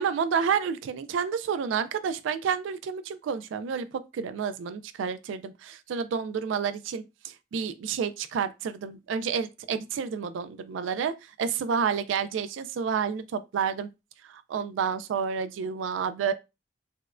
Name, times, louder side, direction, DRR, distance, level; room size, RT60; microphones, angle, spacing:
voice 1, 0.0-3.9 4.1-13.9 14.3-16.3, right 6 dB, 90° right, 0.3 m, -30 dB
4.2 x 2.1 x 2.4 m
head